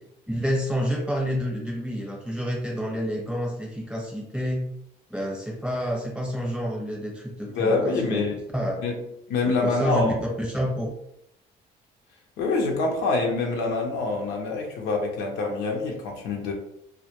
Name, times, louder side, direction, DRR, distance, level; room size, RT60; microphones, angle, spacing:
voice 1, 0.3-4.7 5.1-8.2 8.5-8.8 9.4-10.9, equal, 5° right, -2 dB, 0.8 m, -29 dB
voice 2, 7.5-8.4 8.8-8.9 9.3-10.1 12.4-16.5, left 3 dB, 90° left, 1 dB, 0.6 m, -25 dB
2.1 x 2.1 x 2.9 m, 0.76 s
cardioid pair, 110°, 17 cm